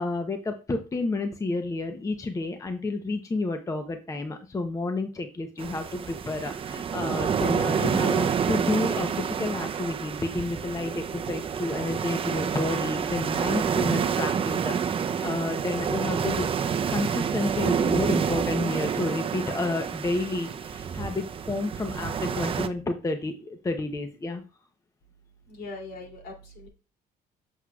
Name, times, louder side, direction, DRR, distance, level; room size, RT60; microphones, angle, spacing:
voice 1, 0.0-16.5 16.9-24.4, left 2 dB, 20° left, 6 dB, 0.7 m, -30 dB
sound 1, 5.6-22.7, right 7 dB, 35° right, 0.5 m, -28 dB
voice 2, 25.5-26.7, left 2 dB, 65° left, 1 dB, 2.8 m, -41 dB
7.8 x 6.2 x 2.3 m, 0.33 s
cardioid pair, 110°, 17 cm